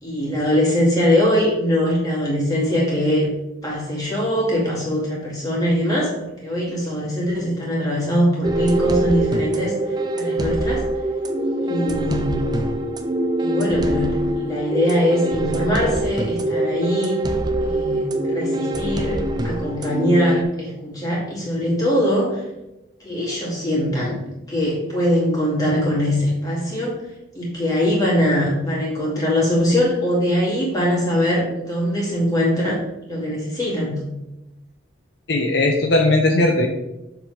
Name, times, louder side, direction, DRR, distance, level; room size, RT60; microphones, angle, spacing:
voice 1, 0.0-3.3 3.6-6.1 6.4-9.7 10.1-10.8 11.6-12.4 13.4-17.2 17.6-22.4 23.0-24.2 24.5-26.9 27.3-32.8 33.1-34.0, equal, 20° left, -5 dB, 2.3 m, -22 dB
sound 1, 8.4-20.4, right 1 dB, 20° right, 0.5 m, -24 dB
voice 2, 35.3-36.7, left 2 dB, 65° left, 2 dB, 0.7 m, -18 dB
6.9 x 4.0 x 4.7 m, 0.94 s
head